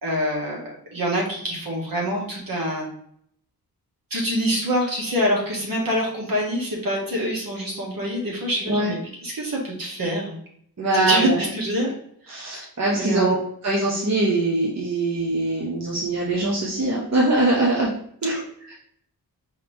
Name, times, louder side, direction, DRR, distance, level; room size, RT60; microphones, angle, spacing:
voice 1, 0.0-2.9 4.1-10.4 10.9-11.9 12.3-12.7 12.9-13.4, equal, 60° right, -2 dB, 1.7 m, -25 dB
voice 2, 10.8-11.4 12.3-13.3 13.6-17.9 18.2-18.4 18.7-18.8, right 2 dB, 45° right, -5 dB, 1.0 m, -22 dB
4.8 x 3.0 x 3.5 m, 0.66 s
wide cardioid pair, 80°, 39 cm